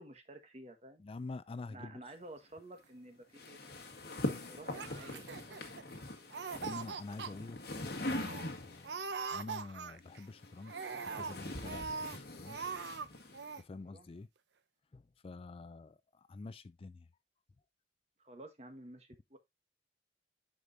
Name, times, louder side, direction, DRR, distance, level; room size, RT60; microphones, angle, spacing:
voice 1, 0.0-1.0 1.6-3.6 4.1-5.5 13.8-14.1 18.2-19.4, right 1 dB, 40° right, 1.4 m, -52 dB
voice 2, 1.0-2.0 6.6-7.6 8.0-10.7 11.0-12.6 13.6-14.3 14.9-17.1, left 3 dB, 30° left, 0.3 m, -47 dB
sound 1, 3.3-9.0 10.0-13.6, left 1 dB, 60° left, 1.7 m, -42 dB
Laughter, 4.6-6.0 6.3-7.3 7.7-7.8 8.1-8.4 8.8-10.2 10.6-12.2 12.5-13.1 13.3-13.6, right 5 dB, 80° right, 0.7 m, -42 dB
9.8 x 5.1 x 2.6 m
head